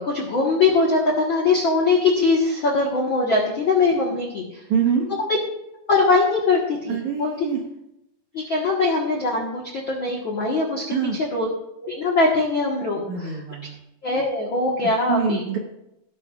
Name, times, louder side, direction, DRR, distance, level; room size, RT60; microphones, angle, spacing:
voice 1, 0.0-4.6 5.9-7.3 8.3-10.8 11.2-11.5 11.8-13.4 14.0-15.4, left 3 dB, 65° left, -1 dB, 1.2 m, -21 dB
voice 2, 4.7-5.1 6.9-7.6 10.9-11.2 13.1-13.8 15.1-15.6, right 6 dB, 65° right, 1 dB, 2.0 m, -24 dB
17.5 x 9.9 x 2.4 m, 0.85 s
omnidirectional pair, 4.4 m